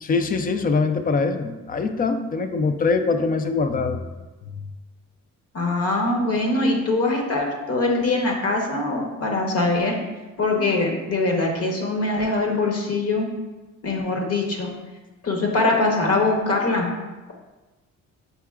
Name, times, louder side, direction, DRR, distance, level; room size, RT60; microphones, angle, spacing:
voice 1, 0.0-4.0, left 4 dB, 30° left, 8 dB, 0.4 m, -23 dB
voice 2, 5.5-10.0 10.4-13.3 13.8-14.7 15.2-16.9, left 2 dB, 50° left, 1 dB, 1.0 m, -22 dB
5.7 x 3.7 x 2.4 m, 1.2 s
cardioid pair, 90°, 30 cm